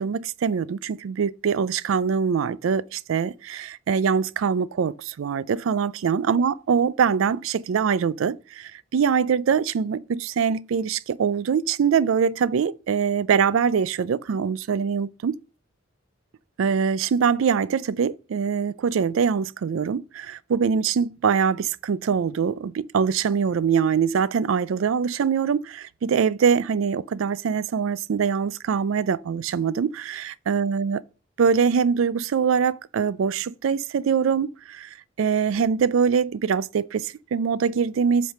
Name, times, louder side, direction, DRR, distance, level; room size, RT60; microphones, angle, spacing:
voice 1, 0.0-15.3 16.6-31.0 31.4-34.9 35.2-38.3, right 6 dB, 85° right, 0.4 m, -23 dB
7.8 x 3.3 x 5.5 m
head